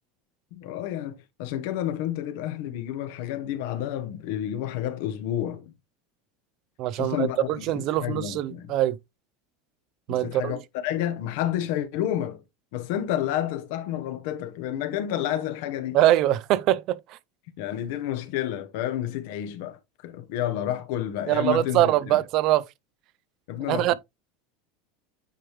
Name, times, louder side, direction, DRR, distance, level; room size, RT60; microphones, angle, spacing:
voice 1, 0.5-5.7 6.9-8.7 10.1-12.4 12.7-16.0 17.6-22.2 23.5-23.9, left 11 dB, 65° left, 1.1 m, -30 dB
voice 2, 6.8-9.0 10.1-10.6 15.9-17.2 21.3-22.6 23.7-23.9, right 14 dB, 45° right, 0.5 m, -23 dB
9.1 x 3.4 x 3.1 m
supercardioid pair, 150°, 0 cm